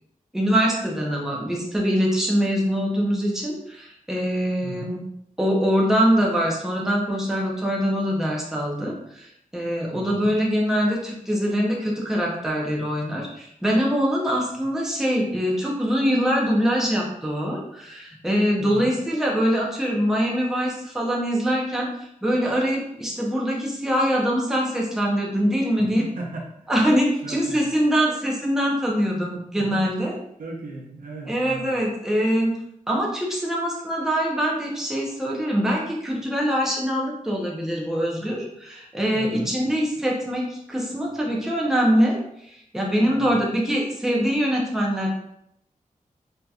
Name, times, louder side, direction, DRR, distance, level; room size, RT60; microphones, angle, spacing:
voice 1, 0.3-5.0 5.4-21.9 22.2-26.1 26.7-30.1 31.3-32.5 32.9-45.1, equal, 5° right, -3 dB, 0.6 m, -23 dB
voice 2, 4.6-5.0 9.9-10.3 18.6-18.9 25.8-26.4 27.2-27.7 29.5-29.8 30.4-31.7 39.1-39.5 43.1-43.4, right 2 dB, 85° right, -2 dB, 0.7 m, -36 dB
3.5 x 2.7 x 2.3 m, 0.76 s
wide cardioid pair, 140°, 14 cm